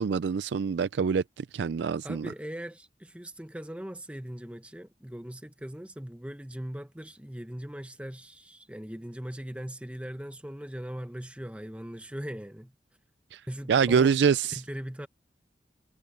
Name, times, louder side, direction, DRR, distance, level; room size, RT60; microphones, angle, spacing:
voice 1, 0.0-2.3 13.3-13.4 13.7-14.6, right 6 dB, 80° right, 0.4 m, -25 dB
voice 2, 2.0-12.7 13.5-14.2 14.5-15.1, equal, 5° right, 1.0 m, -40 dB
head